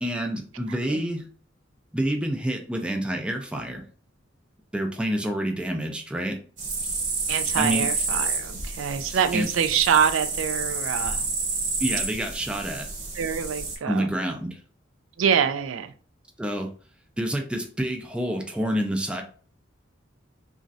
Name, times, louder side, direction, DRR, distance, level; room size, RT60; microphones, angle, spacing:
voice 1, 0.0-1.3 1.9-3.8 4.7-6.4 7.5-7.9 9.3-9.5 11.8-12.9 13.8-14.6 16.4-16.7 17.2-19.2, right 1 dB, 5° right, 0.3 m, -28 dB
voice 2, 0.7-1.0 7.3-11.3 13.1-14.1 15.2-15.9, right 7 dB, 85° right, 0.4 m, -25 dB
sound 1, 6.6-13.8, right 3 dB, 45° right, 0.8 m, -29 dB
3.0 x 2.4 x 2.5 m
head